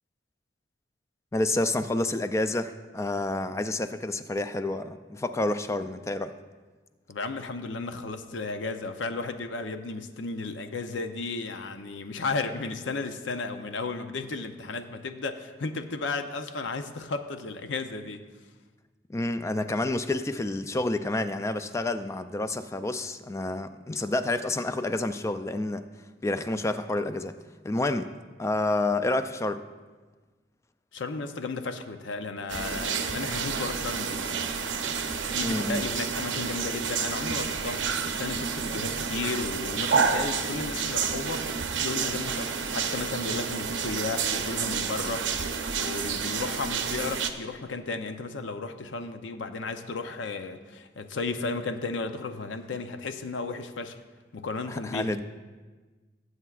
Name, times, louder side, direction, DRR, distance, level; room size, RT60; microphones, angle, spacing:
voice 1, 1.3-6.3 19.1-25.8 26.2-27.3 27.6-28.1 28.4-29.6 35.4-35.8 54.7-55.2, left 2 dB, 15° left, 10 dB, 0.3 m, -29 dB
voice 2, 7.1-18.3 30.9-34.2 35.3-54.0 54.3-55.2, left 3 dB, 85° left, 8 dB, 0.6 m, -34 dB
sound 1, 32.5-47.3, right 6 dB, 90° right, 0.7 m, -30 dB
18.5 x 8.0 x 2.4 m, 1.3 s
head